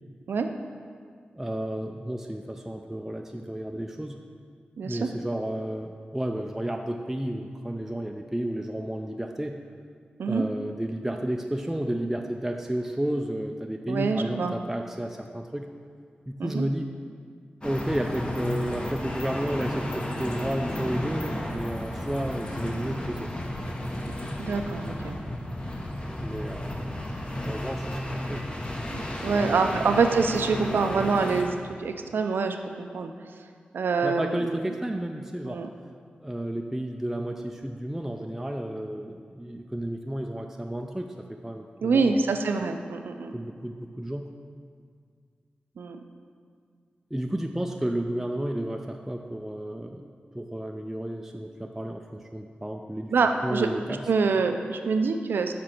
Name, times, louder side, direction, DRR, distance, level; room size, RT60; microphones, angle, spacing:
voice 1, 1.4-4.2 4.8-9.6 10.3-15.7 16.3-16.9 17.6-23.3 26.2-27.0 27.5-28.4 29.3-30.0 34.0-35.6 36.2-41.1 41.4-42.2 43.3-44.3 47.1-50.0 50.3-53.1 53.4-54.0, right 1 dB, 10° right, 3 dB, 0.3 m, -32 dB
voice 2, 4.8-5.1 10.2-10.4 13.9-14.5 16.4-16.7 24.4-25.2 28.9-33.1 33.7-34.7 35.4-35.7 41.8-43.3 45.8-46.0 53.1-53.7 54.1-55.5, right 4 dB, 90° right, 6 dB, 0.4 m, -26 dB
sound 1, 17.6-31.4, left 1 dB, 30° left, 0.8 m, -33 dB
6.4 x 5.1 x 4.3 m, 2.1 s
cardioid pair, 60°, 3 cm